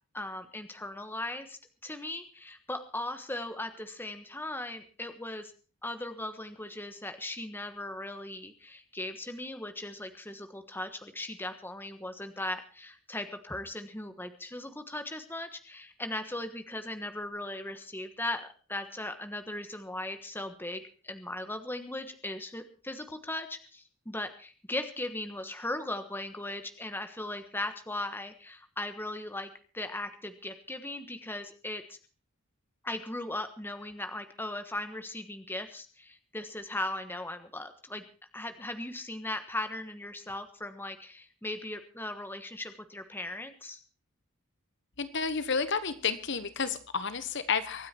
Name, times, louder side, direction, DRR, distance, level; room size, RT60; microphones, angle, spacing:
voice 1, 0.1-5.5 5.8-32.0 32.8-38.0 38.3-43.8, left 1 dB, 10° left, 8 dB, 1.3 m, -38 dB
voice 2, 45.0-47.9, left 5 dB, 55° left, 12 dB, 1.3 m, -31 dB
24.5 x 9.6 x 4.4 m, 0.38 s
head